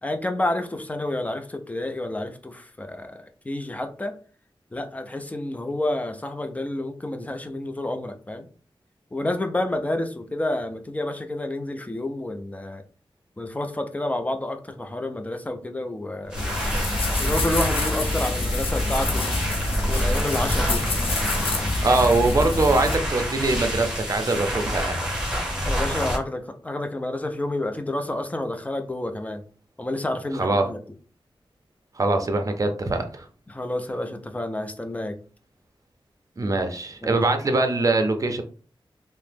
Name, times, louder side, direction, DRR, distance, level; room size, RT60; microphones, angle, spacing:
voice 1, 0.0-4.2 4.7-8.5 9.1-12.8 13.4-16.4 17.2-19.3 19.9-20.9 25.7-29.4 29.8-30.8 33.5-35.2 37.0-37.2, left 1 dB, 15° left, 6 dB, 0.4 m, -29 dB
sound 1, 16.2-26.2, equal, 10° right, 0.9 m, -28 dB
sound 2, 16.3-23.0, left 2 dB, 80° left, 0.6 m, -26 dB
voice 2, 21.8-25.0 30.4-30.6 32.0-33.2 36.4-38.4, right 2 dB, 40° right, 5 dB, 0.5 m, -22 dB
2.8 x 2.1 x 3.4 m, 0.39 s
wide cardioid pair, 105°, 9 cm